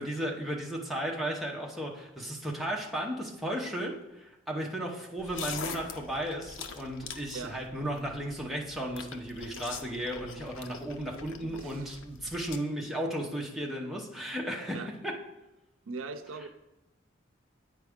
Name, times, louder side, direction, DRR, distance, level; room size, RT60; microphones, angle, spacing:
voice 1, 0.0-15.2 16.4-16.5, right 1 dB, ahead, -2 dB, 0.8 m, -35 dB
sound 1, 5.2-12.6, left 5 dB, 80° left, 0.6 m, -44 dB
voice 2, 11.4-11.9 14.7-14.9 15.9-16.5, right 4 dB, 85° right, 11 dB, 0.5 m, -40 dB
8.6 x 4.7 x 3.6 m, 0.97 s
head